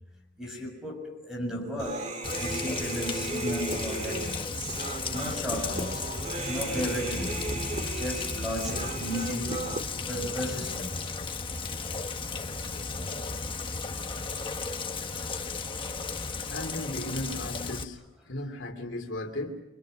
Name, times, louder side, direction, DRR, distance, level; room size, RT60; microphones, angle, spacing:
voice 1, 0.4-4.5 5.1-6.1 6.5-7.6 7.9-9.7 10.1-11.1, equal, 5° right, 6.9 m, -34 dB
Human voice, 1.8-9.8, right 2 dB, 40° right, 1.9 m, -36 dB
Rain, 2.2-17.8, left 4 dB, 25° left, 1.3 m, -35 dB
voice 2, 16.5-18.0 18.2-19.6, left 1 dB, 70° left, 3.0 m, -35 dB
30.0 x 25.0 x 6.4 m
head